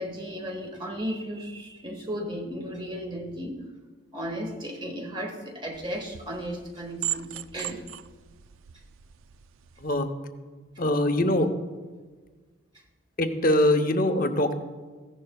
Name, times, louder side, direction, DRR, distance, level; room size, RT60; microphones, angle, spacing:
voice 1, 0.0-3.6 4.1-7.3 7.5-7.8, equal, 20° right, 2 dB, 1.4 m, -35 dB
sound 1, 5.7-10.0, right 13 dB, 70° right, 0.3 m, -38 dB
voice 2, 10.8-11.5 13.2-14.5, left 1 dB, 40° left, 7 dB, 0.8 m, -23 dB
15.0 x 11.0 x 2.3 m, 1.4 s
head